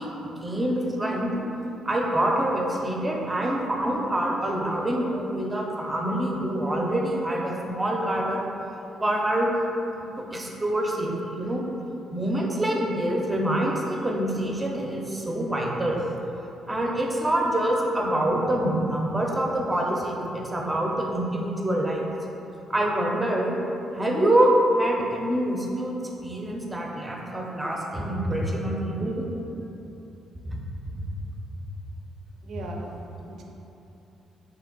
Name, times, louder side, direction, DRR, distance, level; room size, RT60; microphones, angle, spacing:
voice 1, 0.0-1.4 1.9-8.4 9.0-9.6 10.0-11.6 12.1-16.0 16.7-22.1 22.7-23.6 23.9-29.3 30.4-30.6 30.9-31.1, right 1 dB, 15° right, -1 dB, 0.6 m, -26 dB
voice 2, 32.4-33.4, right 2 dB, 75° right, 0 dB, 0.5 m, -38 dB
3.5 x 2.8 x 3.9 m, 3.0 s
cardioid pair, 90°, 0 cm